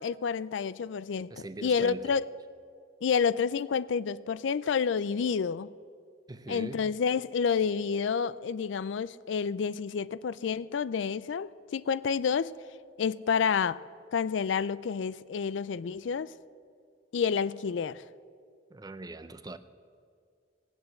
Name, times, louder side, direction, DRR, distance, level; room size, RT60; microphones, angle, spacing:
voice 1, 0.0-2.3 3.0-5.7 6.5-12.5 13.0-13.8 14.1-16.3 17.1-18.0, left 6 dB, 80° left, 0.4 m, -29 dB
voice 2, 1.3-2.2 6.3-6.9 18.7-19.6, right 2 dB, 20° right, 0.5 m, -41 dB
18.0 x 8.1 x 7.7 m
head